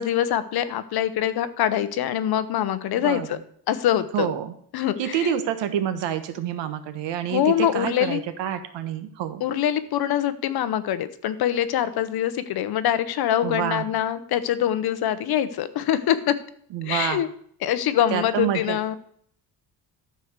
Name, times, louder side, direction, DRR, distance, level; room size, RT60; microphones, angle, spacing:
voice 1, 0.0-3.4 3.7-4.3 4.7-5.4 7.3-8.2 9.4-16.4 16.8-17.3 17.6-19.0, left 10 dB, 60° left, 13 dB, 0.9 m, -24 dB
voice 2, 2.9-3.3 4.1-4.5 5.0-9.4 13.4-13.8 16.7-17.2 18.1-18.8, right 10 dB, 75° right, 10 dB, 1.3 m, -27 dB
13.0 x 4.6 x 6.6 m, 0.62 s
cardioid pair, 165°, 43 cm